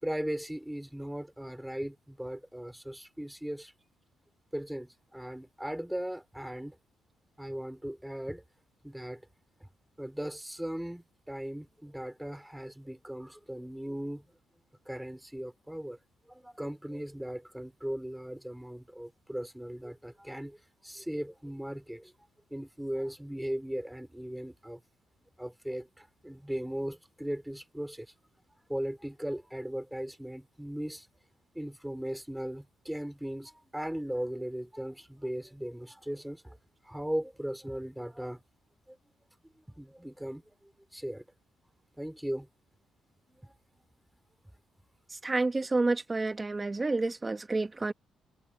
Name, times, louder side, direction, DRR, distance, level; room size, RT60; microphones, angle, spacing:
voice 1, 0.0-3.7 4.5-6.7 7.4-8.4 8.8-9.2 9.6-9.7 10.0-14.3 14.8-16.0 16.3-22.1 22.5-24.8 25.4-28.1 28.7-31.1 31.5-36.6 36.8-38.4 38.9-39.0 39.6-41.2 42.0-42.5 43.3-43.5, equal, 5° right, 5.0 m, -38 dB
voice 2, 45.1-47.9, right 3 dB, 20° right, 1.2 m, -29 dB
cardioid pair, 90°, 0 cm